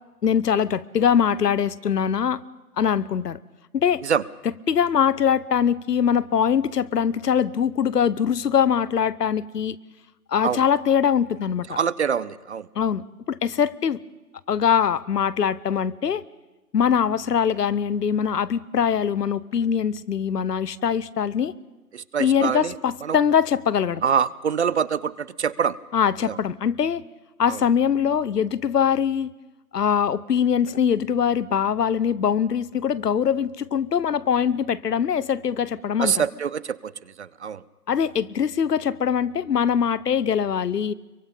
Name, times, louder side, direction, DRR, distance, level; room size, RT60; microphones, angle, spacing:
voice 1, 0.2-2.4 2.8-3.4 3.7-4.0 4.4-9.8 10.3-11.8 12.7-14.0 14.5-16.2 16.7-21.5 22.2-24.0 25.9-27.0 27.4-29.3 29.7-36.3 37.9-40.9, left 8 dB, 85° left, 18 dB, 0.9 m, -22 dB
voice 2, 11.7-12.7 21.9-22.7 23.0-23.2 24.0-25.8 26.3-26.4 27.5-27.6 36.0-36.9 37.2-37.6, right 7 dB, 45° right, 20 dB, 0.6 m, -25 dB
24.0 x 23.5 x 5.4 m, 1.1 s
hypercardioid pair, 155°, 47 cm